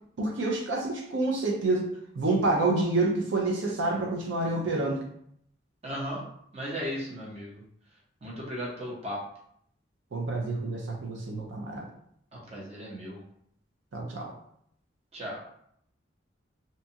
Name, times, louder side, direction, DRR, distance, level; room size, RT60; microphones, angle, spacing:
voice 1, 0.2-5.0 10.1-11.9 13.9-14.3, right 2 dB, 80° right, -1 dB, 0.5 m, -28 dB
voice 2, 5.8-6.2 6.5-7.6 8.2-9.2 12.3-13.2 15.1-15.4, equal, 35° right, -4 dB, 0.7 m, -36 dB
2.7 x 2.3 x 2.7 m, 0.69 s
head